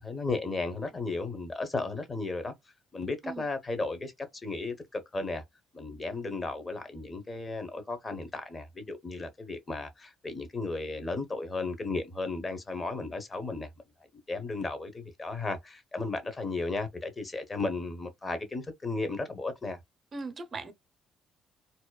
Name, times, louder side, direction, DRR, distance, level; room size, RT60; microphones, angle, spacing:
voice 1, 0.0-2.5 2.9-4.1 4.4-5.4 5.7-13.7 14.3-19.8, left 3 dB, 30° left, 1.0 m, -34 dB
voice 2, 20.1-20.7, right 3 dB, 45° right, 0.7 m, -39 dB
2.9 x 2.1 x 2.2 m
hypercardioid pair, 60°, 0 cm